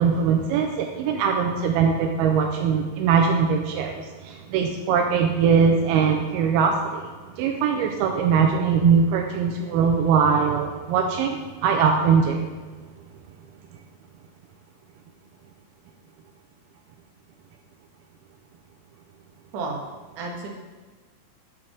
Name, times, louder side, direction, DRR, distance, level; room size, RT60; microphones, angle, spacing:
voice 1, 0.0-12.5 12.7-12.8, right 6 dB, 85° right, 3 dB, 2.5 m, -21 dB
voice 2, 20.2-20.5, right 3 dB, 60° right, -1 dB, 2.7 m, -31 dB
9.5 x 4.8 x 6.2 m, 1.3 s
omnidirectional pair, 4.5 m